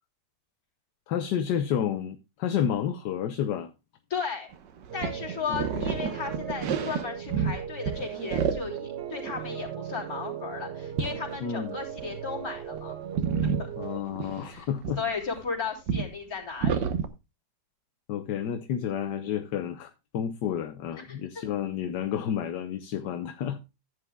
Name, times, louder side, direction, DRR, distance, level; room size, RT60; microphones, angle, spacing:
voice 1, 1.1-3.7 5.5-5.9 11.4-11.8 13.8-15.0 18.1-23.6, left 9 dB, 75° left, 1.5 m, -30 dB
voice 2, 4.1-4.5 4.9-13.0 13.4-13.7 14.4-14.7 15.0-16.8 20.9-21.4, left 6 dB, 55° left, 3.8 m, -35 dB
sound 1, 4.5-7.6 7.9-8.8 9.1-9.7 11.0-11.4 12.0-12.1 12.4-12.8 13.1-15.4 15.9-16.1 16.6-17.1, right 7 dB, 80° right, 1.7 m, -29 dB
sound 2, 4.9-14.0, right 8 dB, 65° right, 0.6 m, -38 dB
15.0 x 9.3 x 2.3 m
omnidirectional pair, 1.9 m